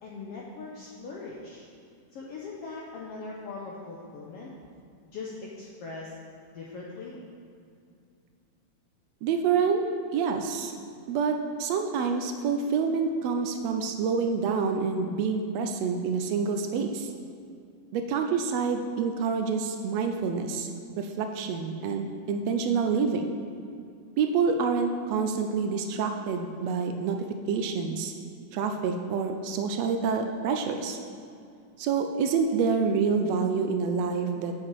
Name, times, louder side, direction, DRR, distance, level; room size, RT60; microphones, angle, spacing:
voice 1, 0.0-1.7 2.1-4.5 5.1-6.1 6.5-7.2, left 3 dB, 70° left, -3 dB, 1.6 m, -40 dB
voice 2, 9.2-9.9 10.1-10.7 11.1-17.1 17.9-20.7 21.0-23.3 24.2-27.2 27.5-28.1 28.5-31.0 31.8-34.5, right 5 dB, 75° right, 5 dB, 1.6 m, -27 dB
7.7 x 7.5 x 4.6 m, 2.4 s
omnidirectional pair, 3.3 m